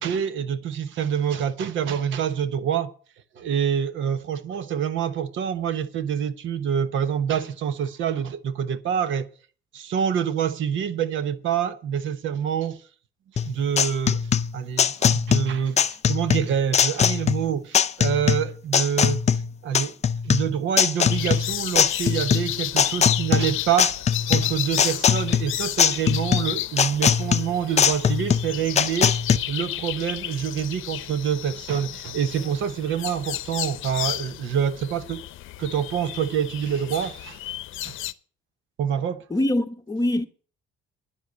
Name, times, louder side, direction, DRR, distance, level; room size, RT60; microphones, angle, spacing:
voice 1, 0.0-2.9 3.4-9.3 9.7-12.8 13.4-14.3 14.5-19.3 19.6-19.9 20.2-23.9 24.3-29.2 29.5-35.2 35.6-37.4 37.8-38.0 38.8-39.3, right 8 dB, 70° right, 1.1 m, -26 dB
sound 1, 13.4-29.4, left 7 dB, 35° left, 0.6 m, -21 dB
sound 2, 21.1-38.1, left 14 dB, 75° left, 0.7 m, -33 dB
voice 2, 39.3-40.3, left 1 dB, 15° left, 0.9 m, -23 dB
10.5 x 7.6 x 8.1 m
cardioid pair, 120°, 21 cm